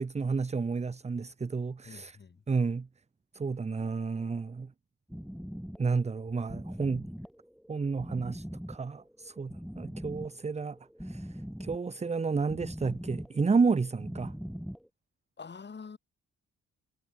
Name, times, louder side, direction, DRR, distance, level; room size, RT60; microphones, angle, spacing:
voice 1, 0.0-2.2 2.5-2.9 3.3-4.7 5.8-7.1 7.7-14.3, right 4 dB, 20° right, 1.0 m, -31 dB
voice 2, 1.8-2.4 12.8-12.9 15.4-16.0, left 5 dB, 35° left, 5.8 m, -46 dB
sound 1, 5.1-14.9, equal, ahead, 3.6 m, -42 dB
cardioid pair, 90°, 30 cm